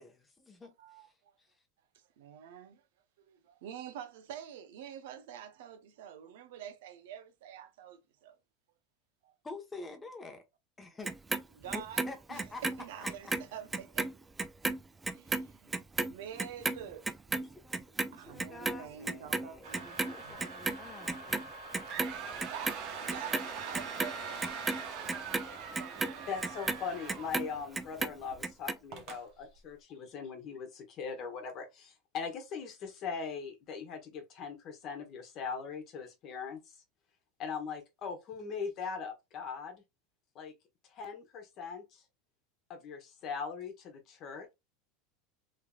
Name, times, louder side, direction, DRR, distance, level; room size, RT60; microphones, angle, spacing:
voice 1, 0.0-1.5 9.4-10.4 10.8-11.1 11.7-12.6 13.0-13.3 17.3-21.5, left 3 dB, 15° left, 1.0 m, -48 dB
voice 2, 0.8-1.3 1.9-2.8 3.2-8.4 9.2-9.3 11.5-12.0 12.3-12.4 12.8-14.1 15.1-15.7 16.0-17.1 18.1-19.9 20.2-20.4 22.4-25.3 25.8-26.5, right 9 dB, 75° right, 0.6 m, -47 dB
Clock, 11.0-13.4 13.7-20.1 20.4-21.5 21.7-22.7 23.1-27.5 27.8-28.8 29.1-29.2, right 3 dB, 15° right, 0.4 m, -34 dB
sound 1, 19.6-27.9 28.3-28.4 28.9-29.2, right 5 dB, 55° right, 0.9 m, -43 dB
voice 3, 26.3-36.8 37.4-39.8 40.3-40.5 40.8-42.0 42.7-44.5, left 5 dB, 45° left, 1.2 m, -40 dB
3.2 x 2.9 x 2.3 m
supercardioid pair, 110°, 0 cm